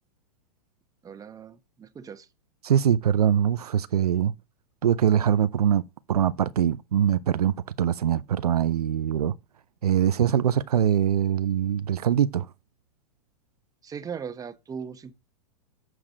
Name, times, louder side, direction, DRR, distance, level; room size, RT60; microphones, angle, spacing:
voice 1, 1.0-2.3 13.8-15.1, right 7 dB, 20° right, 1.0 m, -38 dB
voice 2, 2.6-4.3 4.8-9.3 9.8-12.5, right 9 dB, 80° right, 0.5 m, -23 dB
7.5 x 4.8 x 6.1 m
hypercardioid pair, 105°, 19 cm